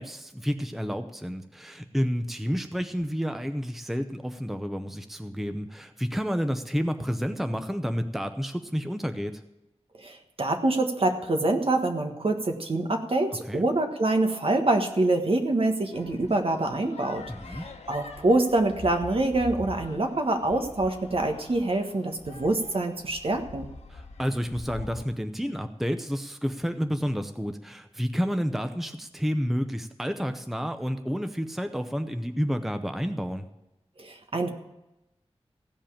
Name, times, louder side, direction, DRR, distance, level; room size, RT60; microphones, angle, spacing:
voice 1, 0.0-9.4 13.4-13.6 17.3-17.6 23.9-33.5, equal, ahead, 7 dB, 0.7 m, -30 dB
voice 2, 10.0-17.2 17.9-23.7 34.0-34.5, right 2 dB, 60° right, 5 dB, 1.5 m, -25 dB
sound 1, 15.9-25.1, left 3 dB, 90° left, 1.2 m, -44 dB
16.0 x 5.4 x 8.8 m, 0.92 s
wide cardioid pair, 90°, 11 cm